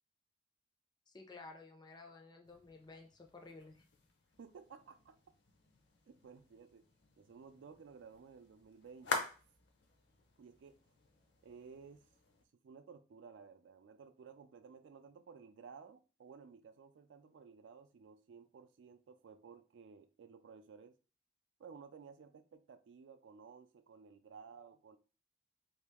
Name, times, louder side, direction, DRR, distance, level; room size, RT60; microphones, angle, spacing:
voice 1, 1.1-3.8, left 3 dB, 20° left, 0.4 m, -54 dB
sound 1, 2.4-12.4, left 3 dB, 60° left, 0.7 m, -47 dB
voice 2, 4.4-5.2 6.1-6.8 7.2-9.3 10.4-10.8 11.4-12.0 12.6-20.9 21.6-25.0, right 5 dB, 70° right, 0.3 m, -56 dB
3.0 x 2.7 x 3.5 m
head